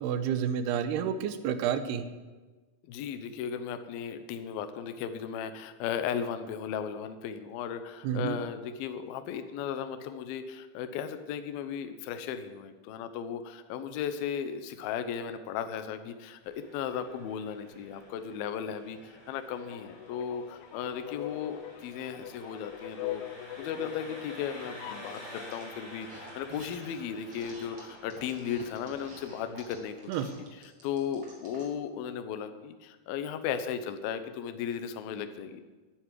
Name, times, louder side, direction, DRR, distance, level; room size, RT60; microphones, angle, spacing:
voice 1, 0.0-2.0 8.0-8.4 30.1-30.3, right 8 dB, 75° right, 10 dB, 2.8 m, -30 dB
voice 2, 2.8-23.2 23.6-35.6, left 8 dB, 70° left, 9 dB, 2.5 m, -36 dB
Engine, 16.4-30.4, left 1 dB, 10° left, 4.6 m, -50 dB
sound 1, 19.5-25.1, left 14 dB, 90° left, 2.2 m, -42 dB
sound 2, 25.1-25.6 26.0-26.9 27.3-31.7, right 2 dB, 35° right, 4.1 m, -50 dB
11.0 x 10.0 x 10.0 m, 1.3 s
omnidirectional pair, 5.1 m